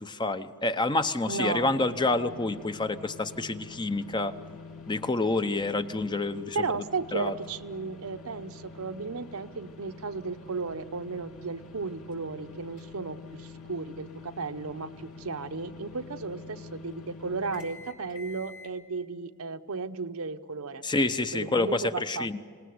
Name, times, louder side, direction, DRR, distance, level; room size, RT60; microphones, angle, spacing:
voice 1, 0.0-4.3 4.9-6.6 7.1-7.3 20.8-22.4, left 2 dB, 20° left, 10 dB, 0.7 m, -28 dB
voice 2, 1.3-1.7 6.5-20.8 21.3-22.4, right 4 dB, 75° right, 9 dB, 0.9 m, -34 dB
sound 1, 1.5-18.7, left 4 dB, 80° left, 2.6 m, -47 dB
26.5 x 19.0 x 9.5 m, 2.1 s
head